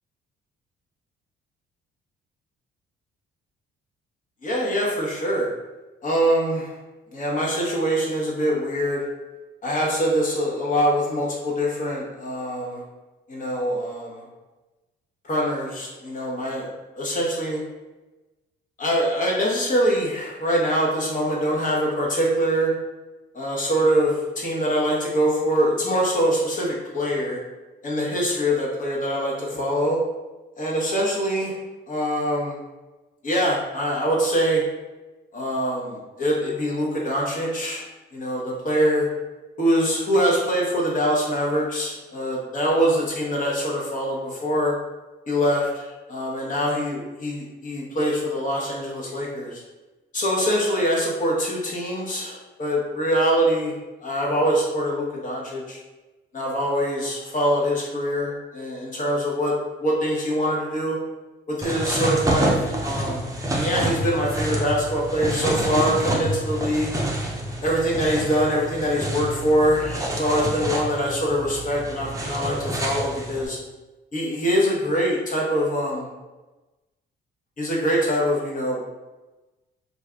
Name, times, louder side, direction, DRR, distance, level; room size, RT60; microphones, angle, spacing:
voice 1, 4.4-5.5 6.0-6.7 7.1-9.0 9.6-12.8 13.3-14.2 15.2-16.7 16.9-17.6 18.8-22.7 23.3-27.4 27.8-30.0 30.6-31.6 31.9-32.6 33.2-34.6 35.3-37.8 38.1-39.1 39.6-44.7 45.3-49.6 50.1-53.7 54.0-55.8 56.3-59.5 59.8-61.0 61.5-63.2 63.5-66.9 67.6-73.6 74.1-76.1 77.6-78.8, equal, 40° left, -3 dB, 1.1 m, -24 dB
sound 1, 61.6-73.5, right 1 dB, 15° right, 0.6 m, -28 dB
2.5 x 2.5 x 3.4 m, 1.1 s
cardioid pair, 90°, 20 cm